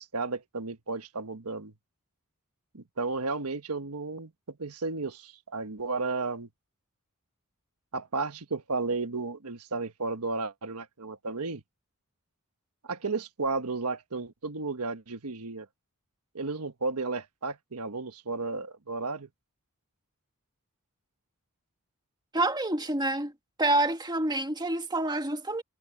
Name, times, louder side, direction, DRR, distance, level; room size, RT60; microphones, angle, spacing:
voice 1, 0.0-1.7 2.7-6.5 7.9-11.6 12.8-15.7 16.3-19.3, right 3 dB, 85° right, 1.3 m, -33 dB
voice 2, 22.3-23.3 23.6-25.6, right 2 dB, 20° right, 1.9 m, -27 dB
head